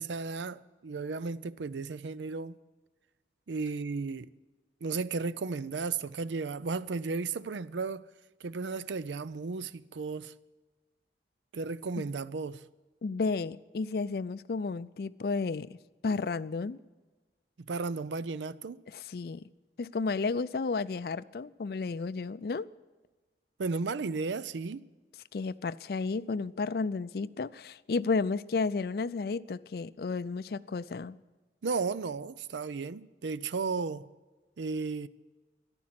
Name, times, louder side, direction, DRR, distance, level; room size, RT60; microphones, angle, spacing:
voice 1, 0.0-2.6 3.5-4.3 4.8-8.1 8.4-10.3 11.5-12.6 17.6-18.8 23.6-24.9 31.6-34.1 34.6-35.1, right 4 dB, 85° right, 0.5 m, -34 dB
voice 2, 13.0-15.8 16.0-16.8 18.9-19.4 19.8-22.7 25.3-31.2, left 4 dB, 55° left, 0.4 m, -32 dB
13.5 x 11.5 x 7.6 m
head